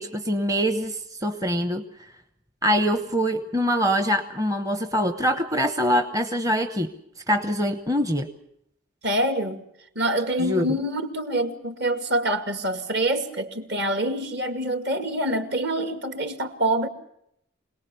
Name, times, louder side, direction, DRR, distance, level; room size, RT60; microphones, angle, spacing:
voice 1, 0.0-1.8 2.6-6.9 7.3-8.3 10.4-10.7, equal, 15° right, 8 dB, 0.9 m, -24 dB
voice 2, 9.0-9.6 10.0-16.9, right 1 dB, 50° right, 8 dB, 2.1 m, -26 dB
25.5 x 19.0 x 6.9 m, 0.75 s
head